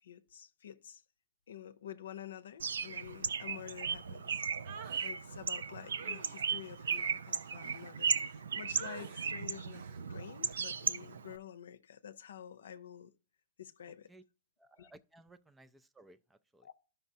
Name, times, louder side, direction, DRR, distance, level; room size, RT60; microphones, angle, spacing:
voice 1, 0.0-1.0 1.5-4.4 4.9-9.8 10.1-13.1 13.6-14.1 14.8-14.9 16.6-16.7, left 9 dB, 80° left, 0.6 m, -49 dB
Bird, 2.6-11.4, right 6 dB, 90° right, 0.4 m, -36 dB
sound 1, 4.6-5.1 6.0-8.4 8.8-9.3 9.7-10.0 10.4-10.7, right 7 dB, 65° right, 0.8 m, -50 dB
voice 2, 14.6-16.7, right 2 dB, 10° right, 0.4 m, -59 dB
12.5 x 5.5 x 2.7 m
hypercardioid pair, 125°, 0 cm